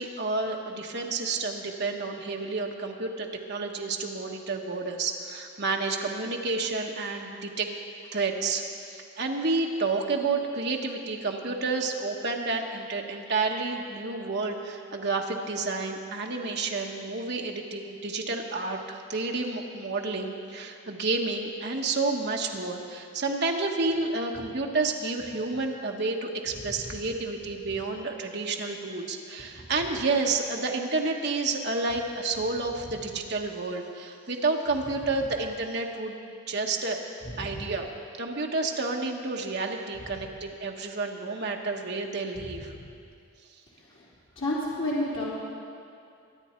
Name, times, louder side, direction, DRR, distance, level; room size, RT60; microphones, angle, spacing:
voice 1, 0.0-7.7 8.1-36.2 36.5-37.0 37.4-37.9 38.2-42.7, right 3 dB, 50° right, 1 dB, 1.2 m, -30 dB
voice 2, 26.6-26.9 37.2-37.6 40.0-40.3 42.6-42.7 43.7-44.1 44.3-45.2, left 1 dB, 65° left, -8 dB, 3.2 m, -32 dB
23.0 x 9.2 x 4.4 m, 2.5 s
head